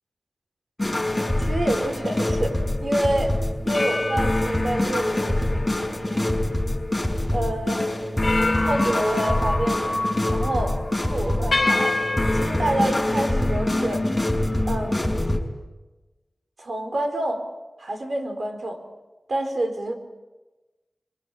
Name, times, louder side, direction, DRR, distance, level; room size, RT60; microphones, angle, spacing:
sound 1, 0.8-15.4, left 1 dB, 20° left, 5.3 m, -24 dB
voice 1, 1.4-3.4 3.6-6.4 7.3-7.9 8.6-10.0 10.3-12.0 12.3-14.0 14.6-15.3 16.6-17.4 17.8-18.8 19.3-20.0, right 1 dB, 75° right, 6 dB, 4.4 m, -28 dB
sound 2, 2.2-2.4 3.7-7.2 7.6-7.7 8.2-10.1 10.4-10.7 11.5-12.7, left 2 dB, 55° left, 3.0 m, -29 dB
27.0 x 23.0 x 9.0 m, 1.2 s
wide cardioid pair, 65°, 0 cm